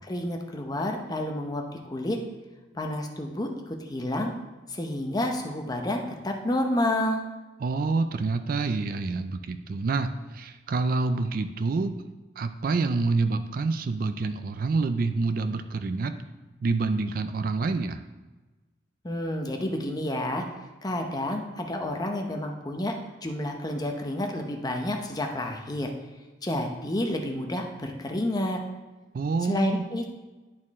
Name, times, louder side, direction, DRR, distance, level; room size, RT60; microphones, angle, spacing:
voice 1, 0.1-1.6 1.9-2.2 2.7-4.3 4.7-7.2 19.0-20.4 20.8-22.9 23.2-25.9 26.4-28.6 29.5-30.3, left 1 dB, 20° left, 3 dB, 0.7 m, -29 dB
voice 2, 7.6-12.0 12.4-16.2 16.6-18.0 29.1-29.8, right 3 dB, 50° right, 9 dB, 0.4 m, -27 dB
10.5 x 4.4 x 3.6 m, 1.2 s
head